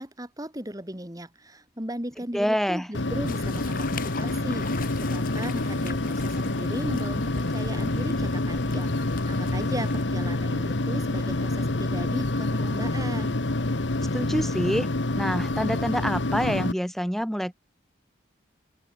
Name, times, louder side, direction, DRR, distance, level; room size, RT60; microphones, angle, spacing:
voice 1, 0.0-13.4, right 1 dB, 20° right, 2.8 m, -37 dB
voice 2, 2.3-2.9 14.1-14.9 15.2-17.5, equal, ahead, 1.9 m, -26 dB
sound 1, 2.9-16.7, left 2 dB, 70° left, 1.4 m, -27 dB
sound 2, 3.2-10.0, left 4 dB, 45° left, 5.2 m, -41 dB
open air
head